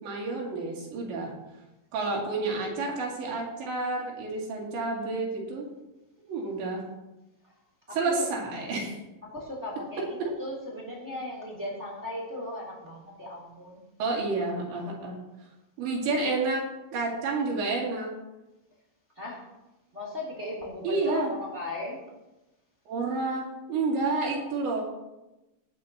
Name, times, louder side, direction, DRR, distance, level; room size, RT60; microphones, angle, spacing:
voice 1, 0.0-1.3 1.9-5.7 6.3-6.8 7.9-9.0 10.2-10.3 14.0-15.1 15.8-16.6 16.9-18.1 20.8-21.3 22.9-23.4 23.7-24.9, right 3 dB, 75° right, -3 dB, 5.2 m, -29 dB
voice 2, 7.9-8.3 9.2-13.8 16.3-16.4 19.1-19.4 19.9-22.0, left 2 dB, 15° right, -4 dB, 3.0 m, -37 dB
19.5 x 10.5 x 3.0 m, 1.0 s
omnidirectional pair, 5.3 m